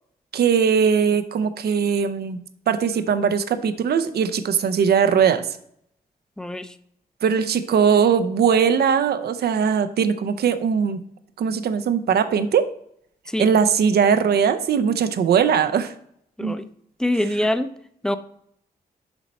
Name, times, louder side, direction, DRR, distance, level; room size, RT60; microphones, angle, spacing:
voice 1, 0.3-5.5 7.2-11.0 11.4-12.6 13.4-15.9 16.4-16.6, right 7 dB, 85° right, 10 dB, 0.6 m, -20 dB
voice 2, 6.4-6.8 13.3-13.5 16.4-16.7 17.0-17.7 18.0-18.2, left 1 dB, 5° left, 11 dB, 0.5 m, -24 dB
7.1 x 5.3 x 4.2 m, 0.69 s
cardioid pair, 85°, 16 cm